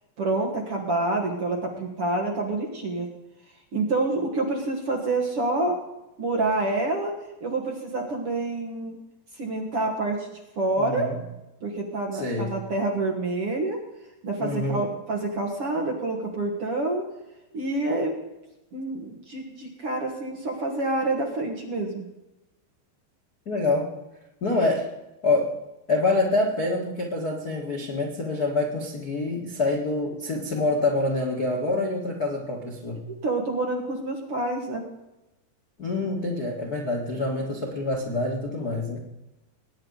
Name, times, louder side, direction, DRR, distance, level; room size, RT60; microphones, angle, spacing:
voice 1, 0.2-3.1 3.7-5.8 6.2-7.1 7.4-8.9 9.3-10.3 10.6-11.1 11.6-13.8 14.2-17.0 17.5-18.2 18.7-22.1 33.1-34.8, right 2 dB, 50° right, 0 dB, 1.8 m, -27 dB
voice 2, 10.8-11.1 12.1-12.6 14.4-14.9 23.4-23.9 24.4-24.9 25.2-25.6 25.9-33.0 35.8-39.0, left 2 dB, 85° left, -1 dB, 0.8 m, -26 dB
21.5 x 9.8 x 4.0 m, 0.98 s
omnidirectional pair, 4.9 m